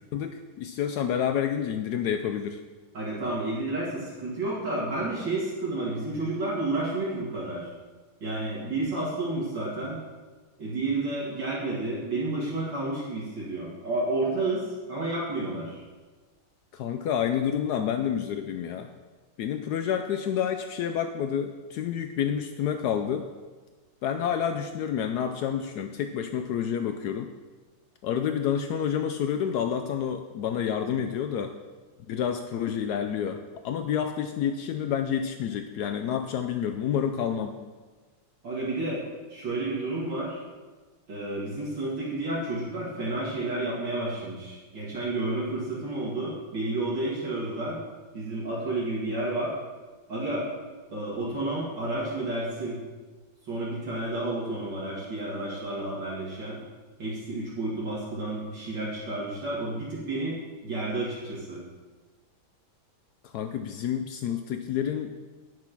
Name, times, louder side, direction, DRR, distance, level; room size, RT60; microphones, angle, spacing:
voice 1, 0.1-2.6 16.7-18.9 19.4-23.3 24.0-27.3 28.0-31.5 32.1-37.6 63.2-65.2, left 8 dB, 90° left, 6 dB, 0.8 m, -29 dB
voice 2, 2.9-7.7 8.2-10.0 10.6-15.8 38.4-39.0 39.3-40.4 41.1-47.8 48.1-49.6 50.1-50.5 50.9-52.8 53.5-56.6 57.0-60.4 60.6-61.6, right 2 dB, 60° right, -7 dB, 2.7 m, -31 dB
10.5 x 6.2 x 5.9 m, 1.3 s
omnidirectional pair, 2.3 m